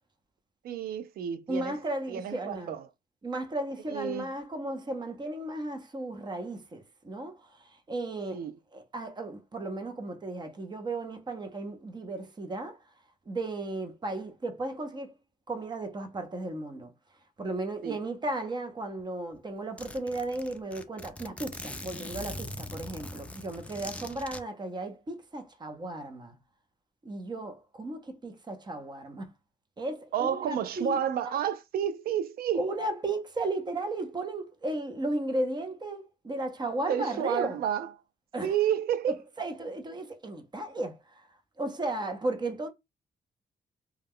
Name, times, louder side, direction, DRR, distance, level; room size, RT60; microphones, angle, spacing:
voice 1, 0.6-1.8 2.1-2.8 3.9-4.3 8.3-8.5 17.8-18.0 30.1-32.7 36.9-37.9 38.4-39.2, right 9 dB, 75° right, 0.4 m, -30 dB
voice 2, 1.5-2.8 3.2-8.4 8.7-12.8 13.3-15.1 15.5-16.9 17.4-26.3 27.0-29.3 29.8-31.0 32.5-37.6 38.3-38.5 39.1-41.3 41.6-42.7, right 2 dB, 30° right, 0.7 m, -35 dB
Zipper (clothing), 19.0-19.1 19.3-19.4 19.8-24.4, left 1 dB, 10° left, 0.4 m, -41 dB
2.3 x 2.2 x 3.5 m
cardioid pair, 75°, 15 cm